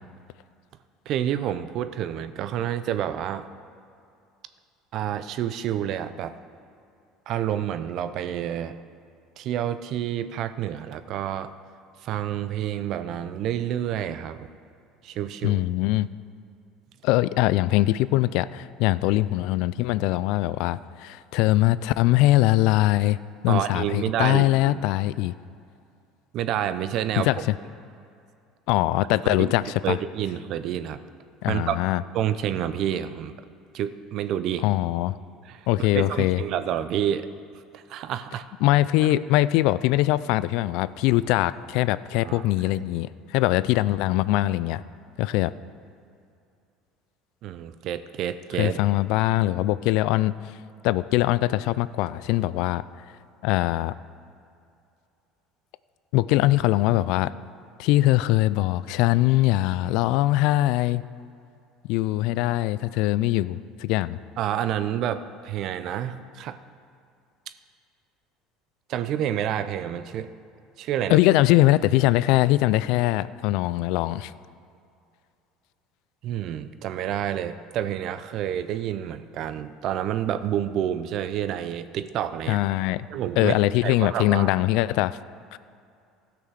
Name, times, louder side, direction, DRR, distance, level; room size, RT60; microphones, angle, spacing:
voice 1, 1.1-3.5 4.9-6.4 7.3-8.8 9.4-11.5 12.0-14.5 15.0-15.6 23.5-24.8 26.3-27.4 29.2-29.5 29.8-31.0 31.5-31.8 32.1-33.3 33.7-34.6 35.4-35.7 35.9-37.3 37.7-38.4 42.2-42.5 47.4-48.8 64.4-66.6 68.9-70.3 70.8-71.2 76.2-82.6 83.1-83.6 83.8-84.5, right 10 dB, 60° right, 11 dB, 0.6 m, -29 dB
voice 2, 15.4-16.1 17.0-23.2 23.4-25.3 27.2-27.4 28.7-30.0 31.4-32.0 34.6-35.2 35.7-36.4 38.6-44.8 45.2-45.5 48.6-50.4 50.8-52.8 53.4-53.9 56.1-57.3 57.8-61.0 61.8-64.2 71.1-74.3 82.5-83.1 83.4-85.2 85.5-85.6, left 16 dB, 70° left, 17 dB, 0.3 m, -22 dB
15.5 x 5.9 x 6.4 m, 2.5 s
hypercardioid pair, 80°, 0 cm